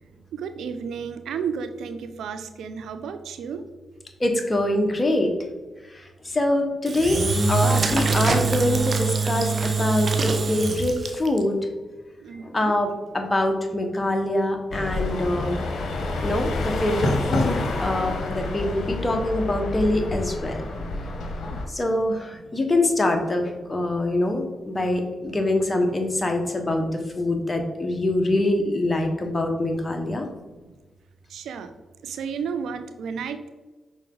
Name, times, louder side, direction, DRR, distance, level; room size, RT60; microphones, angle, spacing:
voice 1, 0.3-3.6 12.2-12.8 21.5-21.6 22.3-22.5 23.7-24.1 27.3-28.0 29.2-29.3 29.9-30.8 31.3-31.7 32.0-33.5, right 6 dB, 80° right, 9 dB, 0.5 m, -35 dB
voice 2, 4.2-5.3 6.2-7.2 7.5-11.6 12.4-15.6 16.2-20.6 21.7-30.2, left 1 dB, 25° left, 4 dB, 1.4 m, -24 dB
Engine / Drill, 6.9-11.4, right 4 dB, 50° right, 1.0 m, -23 dB
sound 1, 14.7-21.7, left 2 dB, 70° left, 1.1 m, -28 dB
6.1 x 4.3 x 3.9 m, 1.2 s
supercardioid pair, 50°, 0 cm